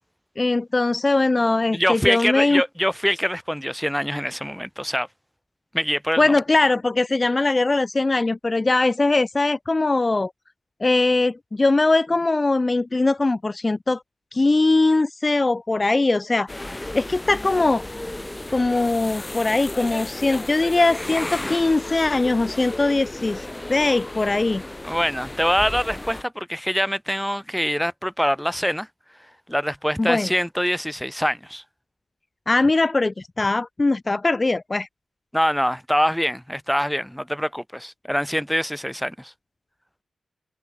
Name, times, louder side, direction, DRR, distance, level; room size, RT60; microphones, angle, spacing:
voice 1, 0.4-2.6 6.2-10.3 10.8-14.0 14.3-16.5 16.9-17.8 18.5-24.6 30.0-30.3 32.5-34.9, left 2 dB, 35° left, 0.6 m, -21 dB
voice 2, 1.7-5.1 5.7-6.2 24.8-28.9 29.5-31.6 35.3-39.3, equal, ahead, 4.4 m, -24 dB
sound 1, 16.5-26.2, left 1 dB, 20° left, 4.4 m, -34 dB
supercardioid pair, 40°, 0 cm